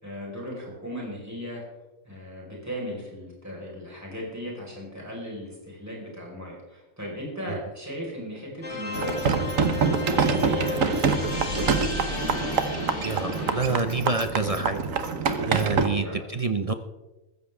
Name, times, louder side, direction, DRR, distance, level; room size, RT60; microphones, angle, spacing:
voice 1, 0.0-1.6 2.0-9.4 9.9-11.9 15.7-16.1, equal, 10° right, -3 dB, 4.5 m, -36 dB
sound 1, 8.6-13.6, left 2 dB, 55° left, 2.2 m, -33 dB
sound 2, 8.9-15.9, right 5 dB, 75° right, 1.5 m, -25 dB
voice 2, 13.0-14.8 15.5-16.7, right 3 dB, 40° right, 8 dB, 0.5 m, -27 dB
15.0 x 14.0 x 3.5 m, 1.0 s
omnidirectional pair, 1.4 m